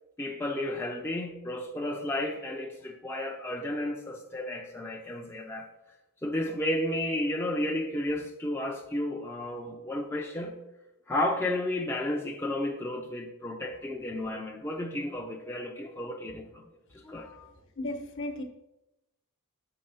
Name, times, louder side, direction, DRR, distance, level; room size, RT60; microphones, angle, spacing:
voice 1, 0.2-5.7 6.2-10.6 11.1-16.7 17.0-17.5, left 1 dB, 10° left, 1 dB, 0.4 m, -32 dB
voice 2, 17.8-18.4, left 1 dB, 55° left, 6 dB, 0.9 m, -34 dB
6.6 x 3.4 x 5.5 m, 0.93 s
head